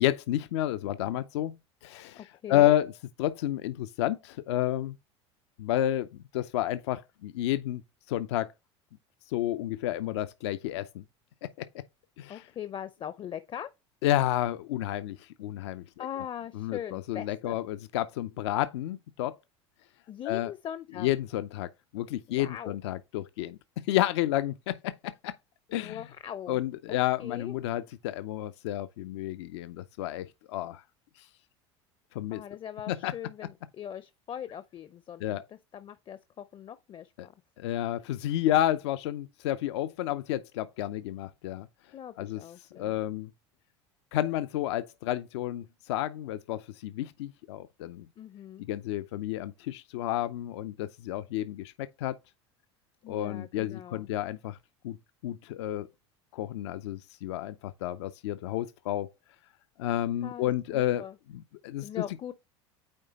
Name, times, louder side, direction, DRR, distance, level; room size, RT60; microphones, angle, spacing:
voice 1, 0.0-2.9 3.2-5.0 5.6-6.1 6.3-7.8 8.1-8.5 9.3-11.0 11.4-11.7 12.2-12.4 14.0-16.1 16.5-19.4 20.3-20.5 21.0-25.3 25.7-26.0 26.5-30.8 32.1-32.4 32.9-33.1 35.2-35.4 37.2-37.3 37.6-41.7 42.2-42.4 42.7-43.3 44.1-48.1 48.6-52.2 53.1-54.6 54.8-55.0 55.2-55.9 56.3-59.1 59.8-61.0 61.3-61.9, left 13 dB, 75° left, 0.6 m, -30 dB
voice 2, 2.2-2.7 12.3-13.7 16.0-17.6 20.1-21.1 22.3-22.8 25.7-26.6 26.9-27.6 32.3-37.3 41.9-43.0 48.2-48.6 53.0-54.1 60.2-61.2 61.8-62.3, left 10 dB, 35° left, 0.6 m, -41 dB
8.9 x 3.3 x 4.0 m
hypercardioid pair, 85°, 14 cm